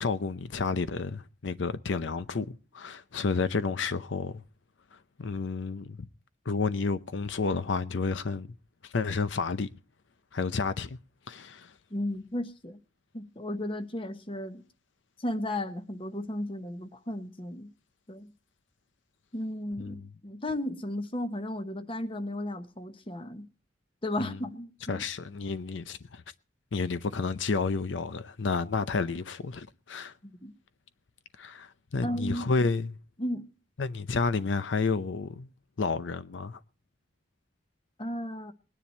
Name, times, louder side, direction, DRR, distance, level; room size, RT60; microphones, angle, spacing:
voice 1, 0.0-4.4 4.9-6.1 6.5-8.5 8.8-9.7 10.3-11.0 11.3-11.8 19.8-20.1 24.2-24.4 24.9-26.2 26.7-30.1 31.4-33.0 33.8-35.5 35.8-36.6, left 4 dB, 80° left, 0.6 m, -31 dB
voice 2, 11.9-12.8 13.1-14.6 15.2-17.7 18.1-18.3 19.3-20.0 20.2-23.5 24.0-25.0 30.2-30.5 32.0-32.5 33.2-33.4 38.0-38.5, left 1 dB, 30° left, 1.1 m, -34 dB
20.0 x 10.0 x 4.3 m
head